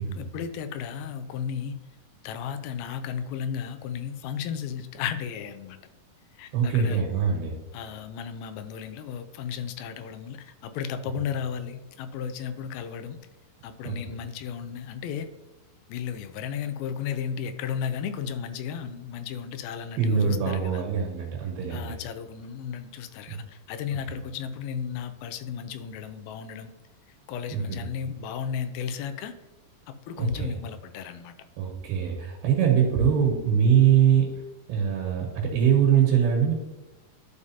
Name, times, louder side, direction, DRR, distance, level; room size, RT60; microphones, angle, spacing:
voice 1, 0.0-1.8 2.2-5.8 6.3-7.0 7.7-13.2 13.6-15.3 15.9-20.8 21.7-26.7 27.3-29.3 29.9-31.3, left 7 dB, 80° left, 9 dB, 2.3 m, -34 dB
voice 2, 6.5-7.6 13.8-14.1 20.0-22.0 23.3-23.4 27.5-27.8 30.2-30.5 31.6-34.3 34.7-36.5, right 8 dB, 75° right, -1 dB, 3.1 m, -23 dB
12.0 x 4.9 x 2.8 m, 1.0 s
omnidirectional pair, 4.6 m